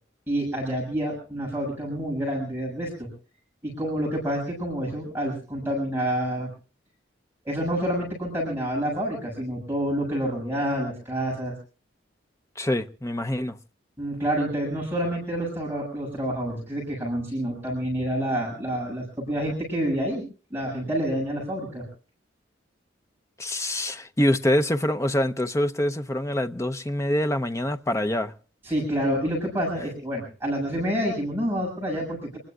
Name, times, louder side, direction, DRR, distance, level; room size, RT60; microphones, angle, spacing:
voice 1, 0.3-3.1 3.6-6.5 7.4-11.5 14.0-20.2 20.5-21.8 28.6-32.4, equal, 10° right, 7.3 m, -28 dB
voice 2, 12.6-13.6 23.4-28.3, left 1 dB, 15° left, 0.8 m, -25 dB
27.5 x 20.5 x 2.5 m
head